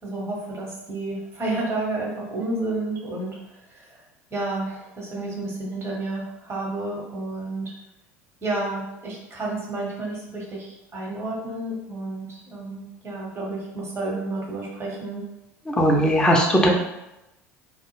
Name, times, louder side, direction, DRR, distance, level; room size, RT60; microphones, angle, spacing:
voice 1, 0.0-3.4 3.7-3.9 4.3-7.7 8.4-15.2, right 2 dB, 35° right, -2 dB, 1.0 m, -31 dB
voice 2, 15.7-16.7, equal, 10° left, -1 dB, 0.5 m, -18 dB
2.2 x 2.0 x 3.1 m, 0.92 s
hypercardioid pair, 70°, 8 cm